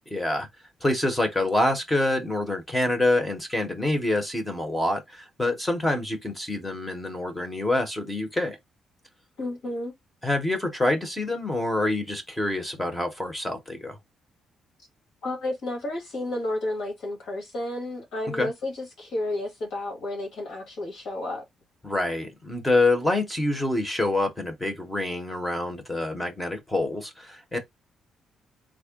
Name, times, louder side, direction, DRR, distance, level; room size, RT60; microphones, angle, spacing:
voice 1, 0.1-0.5 0.8-8.6 10.2-14.0 18.3-18.5 21.8-27.6, left 2 dB, 10° left, 0.7 m, -26 dB
voice 2, 9.4-9.9 15.2-21.4, left 1 dB, 65° left, 1.7 m, -31 dB
3.5 x 2.1 x 3.5 m
cardioid pair, 165°, 0 cm